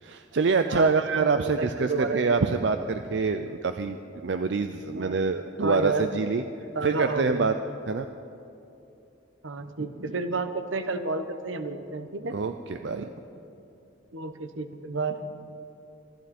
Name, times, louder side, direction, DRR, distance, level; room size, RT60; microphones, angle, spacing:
voice 1, 0.0-6.4 6.8-7.5 7.9-8.1 12.3-12.5 12.8-13.1, right 4 dB, 65° right, 8 dB, 0.5 m, -26 dB
voice 2, 0.7-1.0 1.4-2.5 4.9-5.2 5.6-6.1 6.7-7.5 9.4-12.4 14.1-15.3, right 3 dB, 90° right, 9 dB, 1.0 m, -31 dB
26.0 x 12.0 x 4.3 m, 2.8 s
head